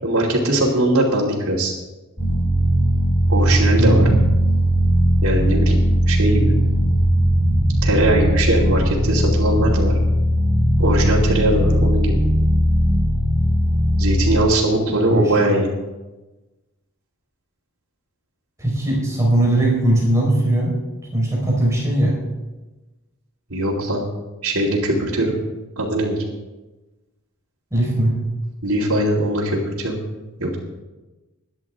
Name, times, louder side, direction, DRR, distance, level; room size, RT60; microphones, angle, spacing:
voice 1, 0.0-1.7 3.3-4.1 5.2-5.8 6.1-6.5 7.8-10.0 10.8-12.2 14.0-15.7 23.5-24.0 24.4-25.3 25.8-26.2 28.6-29.9 30.4-30.5, right 1 dB, 85° right, -6 dB, 2.8 m, -20 dB
sound 1, 2.2-14.4, equal, 10° left, 3.6 m, -18 dB
voice 2, 3.8-4.2 14.9-15.4 18.6-20.7 21.1-22.1 27.7-28.1, right 1 dB, 15° right, -3 dB, 4.8 m, -19 dB
22.0 x 11.0 x 3.7 m, 1.1 s
head